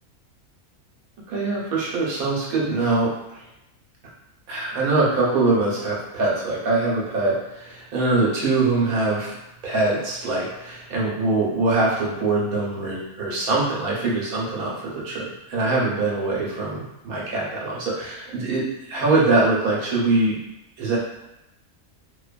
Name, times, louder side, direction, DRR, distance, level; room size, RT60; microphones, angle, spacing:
voice 1, 1.3-3.4 4.5-9.4 9.6-20.4 20.8-21.0, right 3 dB, 80° right, -5 dB, 1.2 m, -23 dB
2.9 x 2.2 x 2.4 m, 0.90 s
omnidirectional pair, 1.5 m